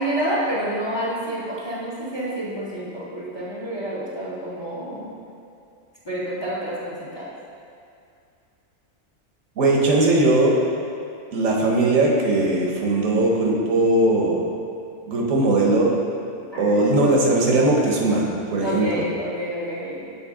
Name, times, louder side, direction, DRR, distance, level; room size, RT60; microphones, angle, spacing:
voice 1, 0.0-5.1 6.0-7.3 16.5-17.4 18.6-20.0, right 1 dB, 25° left, -6 dB, 0.7 m, -29 dB
voice 2, 9.6-10.6 11.3-14.4 15.1-16.0 16.6-19.1, right 2 dB, 80° right, -2 dB, 1.3 m, -19 dB
7.1 x 4.1 x 3.6 m, 2.5 s
omnidirectional pair, 1.3 m